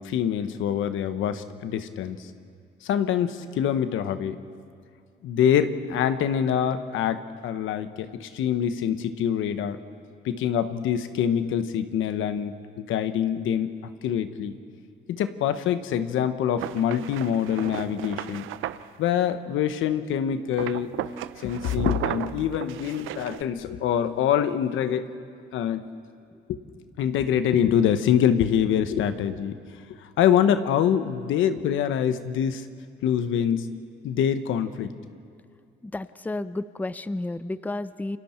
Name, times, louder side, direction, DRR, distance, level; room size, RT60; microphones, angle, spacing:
voice 1, 0.0-2.3 2.8-4.4 5.2-9.8 10.2-13.7 14.0-14.6 15.1-18.5 19.0-20.9 21.4-25.0 25.5-25.9 26.5-26.6 27.0-29.5 29.9-32.7 33.0-33.7 34.0-34.9, left 9 dB, 85° left, 10 dB, 1.1 m, -25 dB
sound 1, 16.6-18.9 20.5-23.4, right 13 dB, 90° right, 0.6 m, -34 dB
voice 2, 35.8-38.2, left 2 dB, 10° left, 14 dB, 0.6 m, -32 dB
29.0 x 25.0 x 4.5 m, 2.3 s
cardioid pair, 90°, 20 cm